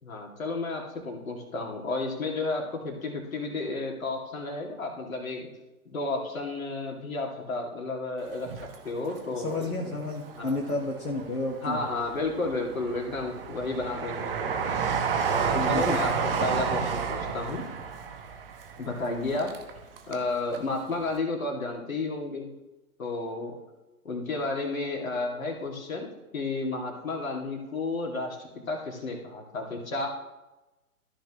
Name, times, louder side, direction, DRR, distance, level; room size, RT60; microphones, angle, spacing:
voice 1, 0.0-5.5 5.9-8.5 8.8-9.9 10.4-10.7 11.6-14.6 15.3-17.6 18.8-19.5 20.1-22.5 23.0-23.5 24.0-30.1, left 3 dB, 65° left, 1 dB, 2.4 m, -32 dB
Train, 8.3-9.6 10.0-11.0 11.5-20.3 20.5-20.6, right 6 dB, 40° right, 1.1 m, -30 dB
voice 2, 9.3-11.8 15.5-16.0, left 2 dB, 90° left, -1 dB, 1.5 m, -31 dB
14.0 x 6.0 x 3.0 m, 1.0 s
figure-of-eight pair, 125°, 44 cm